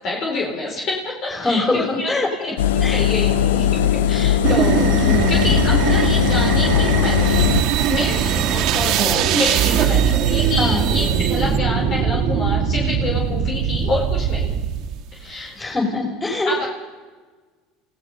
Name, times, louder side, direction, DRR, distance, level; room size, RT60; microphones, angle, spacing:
voice 1, 0.0-2.1 2.4-14.5 15.1-15.6 16.5-16.7, left 2 dB, 50° left, -1 dB, 4.3 m, -27 dB
voice 2, 1.3-2.5 2.8-3.0 5.0-5.5 10.6-10.8 15.5-16.7, left 2 dB, 20° left, 1 dB, 6.1 m, -23 dB
Engine, 2.6-7.6, left 10 dB, 85° left, 0.9 m, -18 dB
sound 1, 4.4-15.0, right 8 dB, 60° right, 2.2 m, -20 dB
28.5 x 16.5 x 5.6 m, 1.4 s
hypercardioid pair, 90°, 0 cm